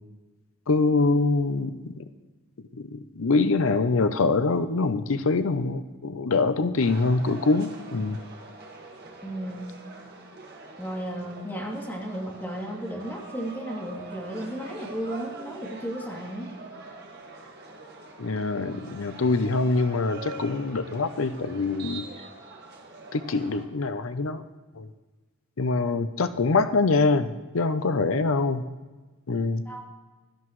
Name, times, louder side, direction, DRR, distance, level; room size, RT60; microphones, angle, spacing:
voice 1, 0.7-2.0 2.8-8.2 18.2-22.0 23.1-24.4 24.8-24.9 25.6-28.6 29.3-29.6, left 3 dB, 75° left, 11 dB, 0.6 m, -24 dB
sound 1, 6.8-23.6, right 3 dB, 50° right, 1.8 m, -44 dB
voice 2, 9.2-9.7 10.8-16.5 29.6-29.9, right 1 dB, 10° left, -3 dB, 2.7 m, -34 dB
16.5 x 12.5 x 3.2 m, 1.2 s
head